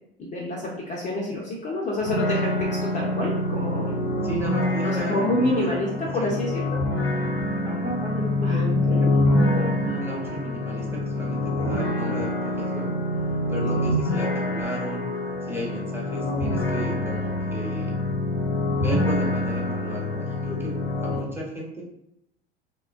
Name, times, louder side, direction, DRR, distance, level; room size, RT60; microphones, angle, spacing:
voice 1, 0.2-4.0 4.8-6.6 8.4-9.2 13.7-13.9 16.2-16.5 20.8-20.9, left 1 dB, 25° left, -3 dB, 0.5 m, -28 dB
sound 1, 2.0-21.2, left 1 dB, 80° left, 0.7 m, -26 dB
voice 2, 4.2-5.8 6.2-6.3 7.6-12.9 13.5-15.0 15.4-17.9 18.8-21.8, equal, 5° right, -4 dB, 0.8 m, -33 dB
3.1 x 2.1 x 2.4 m, 0.79 s
figure-of-eight pair, 75°, 31 cm